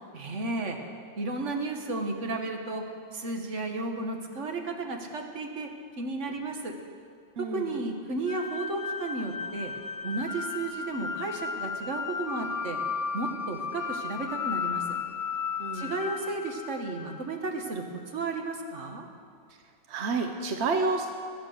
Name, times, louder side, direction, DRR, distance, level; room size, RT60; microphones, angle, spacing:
voice 1, 0.1-0.8 1.2-2.8 3.1-5.7 6.0-6.7 7.4-9.7 10.0-12.8 13.1-14.8 15.7-19.1, right 3 dB, 85° right, 3 dB, 1.7 m, -33 dB
voice 2, 7.4-7.8 15.6-15.9 19.9-21.1, right 3 dB, 65° right, 5 dB, 1.1 m, -29 dB
sound 1, 8.3-17.4, left 6 dB, 45° left, 0.5 m, -34 dB
20.5 x 8.2 x 6.4 m, 2.2 s
omnidirectional pair, 1.2 m